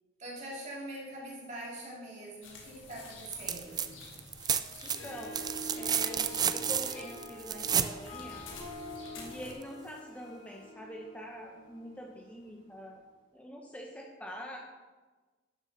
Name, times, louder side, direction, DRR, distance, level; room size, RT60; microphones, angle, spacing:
voice 1, 0.2-3.9, right 1 dB, 40° right, -3 dB, 2.7 m, -43 dB
sound 1, 2.4-9.5, left 3 dB, 85° left, 1.9 m, -50 dB
sound 2, 3.3-3.9 4.1-8.0 9.6-9.7, right 8 dB, 20° right, 0.3 m, -31 dB
Harp, 4.8-12.2, left 1 dB, 70° left, 3.2 m, -46 dB
voice 2, 4.8-5.4 5.7-8.5 9.1-13.0 13.3-14.6, equal, 10° left, 0 dB, 0.8 m, -45 dB
11.5 x 7.1 x 4.0 m, 1.3 s
head